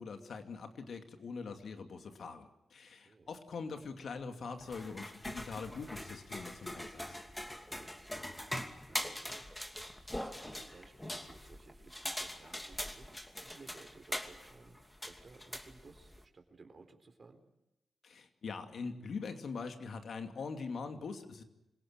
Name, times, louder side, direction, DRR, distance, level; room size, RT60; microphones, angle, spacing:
voice 1, 0.0-7.2 18.0-21.4, left 4 dB, 70° left, 6 dB, 2.5 m, -43 dB
voice 2, 2.8-3.3 7.6-9.5 10.1-17.4, right 3 dB, 50° right, 5 dB, 4.0 m, -58 dB
sound 1, 4.6-16.2, left 1 dB, 10° left, 2.7 m, -43 dB
26.0 x 17.5 x 9.0 m, 0.93 s
supercardioid pair, 45°, 0 cm